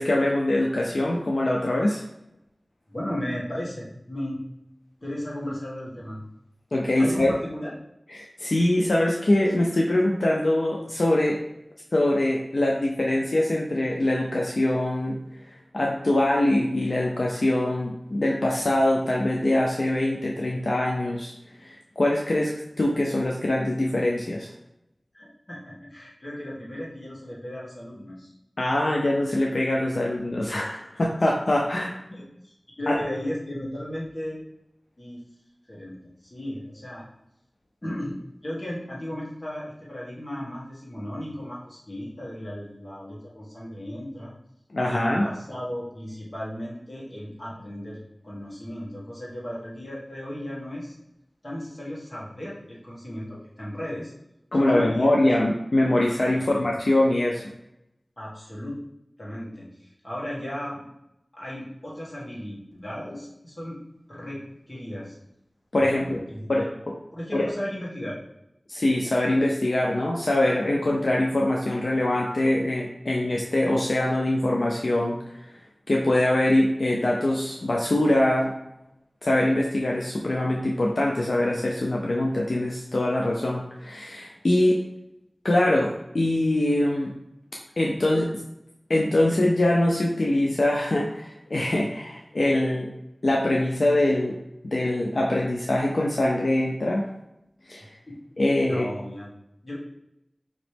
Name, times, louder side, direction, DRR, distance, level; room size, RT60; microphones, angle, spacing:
voice 1, 0.0-2.0 6.7-7.3 8.1-11.4 11.9-15.1 15.5-21.3 21.6-22.5 22.8-24.5 28.6-32.0 32.9-33.0 44.7-45.3 54.5-57.4 65.7-66.2 66.5-66.7 67.3-67.5 68.7-75.6 75.9-78.5 79.2-84.8 85.4-87.1 87.8-88.3 88.9-92.9 93.2-94.4 94.6-97.1 97.7-97.9 98.4-98.9, left 1 dB, 80° left, -2 dB, 0.5 m, -23 dB
voice 2, 2.9-4.4 5.0-6.2 7.0-7.7 25.1-28.3 32.1-34.4 35.0-35.2 35.7-37.0 37.8-44.3 44.9-51.0 51.4-54.1 54.6-55.3 56.4-56.5 58.2-58.8 59.2-60.9 61.3-63.8 64.1-65.2 65.8-66.7 67.1-68.2 98.1-98.2 98.7-99.3 99.6-99.8, left 1 dB, 45° left, -6 dB, 1.6 m, -35 dB
5.1 x 2.9 x 3.3 m, 0.86 s
wide cardioid pair, 55°, 0 cm